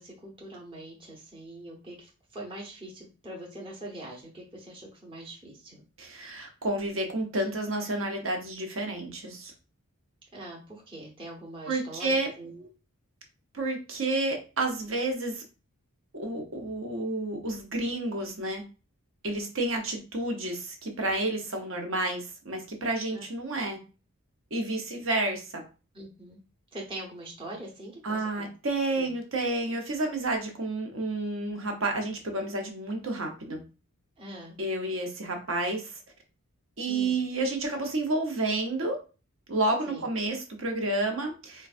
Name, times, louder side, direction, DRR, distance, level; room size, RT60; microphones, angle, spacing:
voice 1, 0.0-5.8 10.3-12.7 23.1-23.2 25.9-26.4 26.7-28.5 28.9-29.1 29.7-29.8 34.2-34.6 36.9-37.2 39.9-40.0, right 1 dB, 25° right, -3 dB, 0.9 m, -43 dB
voice 2, 6.0-9.5 11.7-12.3 13.5-15.4 16.1-18.6 19.2-23.8 24.5-25.6 28.0-33.6 34.6-36.0 36.8-39.0 39.5-41.7, right 2 dB, 60° right, 3 dB, 0.8 m, -30 dB
4.4 x 2.2 x 2.5 m, 0.33 s
head